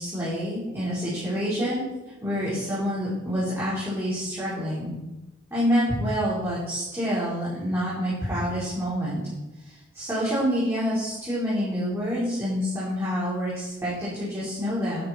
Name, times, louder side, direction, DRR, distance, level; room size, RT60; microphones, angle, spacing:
voice 1, 0.0-1.8 2.2-4.9 5.5-9.2 9.6-15.1, equal, 15° right, -10 dB, 4.6 m, -27 dB
12.0 x 10.5 x 4.5 m, 1.0 s
head